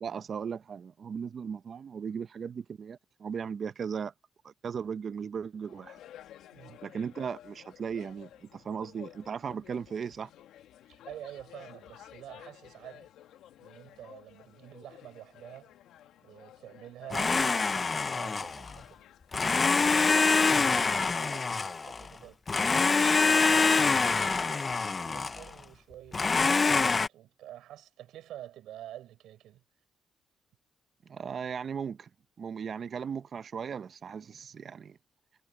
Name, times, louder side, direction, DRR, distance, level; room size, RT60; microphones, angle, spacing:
voice 1, 0.0-4.1 4.4-6.0 6.8-10.3 31.1-32.1 32.4-35.0, right 6 dB, 50° right, 0.8 m, -37 dB
sound 1, 5.6-21.6, left 11 dB, 85° left, 1.5 m, -53 dB
voice 2, 6.5-6.8 10.9-13.1 13.6-15.7 16.2-19.0 19.6-29.6 34.3-34.5, right 12 dB, 85° right, 5.5 m, -48 dB
Domestic sounds home sounds, 17.1-18.8 19.3-22.1 22.5-25.5 26.1-27.1, left 4 dB, 30° left, 0.5 m, -25 dB
cardioid pair, 90°, 0 cm